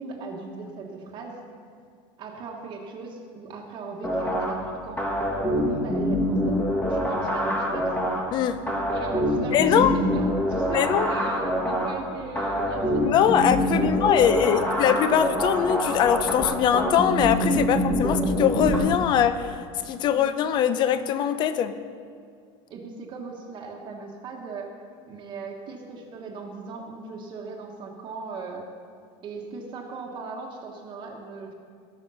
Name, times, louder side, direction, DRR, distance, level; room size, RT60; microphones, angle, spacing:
voice 1, 0.0-1.4 2.2-5.1 5.6-7.9 8.9-14.7 17.7-17.8 20.1-20.2 22.7-24.7 25.1-28.6 29.2-31.5, right 4 dB, 35° right, 0 dB, 1.2 m, -38 dB
sound 1, 4.0-18.8, equal, 10° left, 1.4 m, -25 dB
voice 2, 9.5-9.9 10.7-11.1 13.0-19.5 19.9-21.7, left 9 dB, 35° left, 12 dB, 0.6 m, -22 dB
18.5 x 6.2 x 5.5 m, 2.2 s
cardioid pair, 165°, 14 cm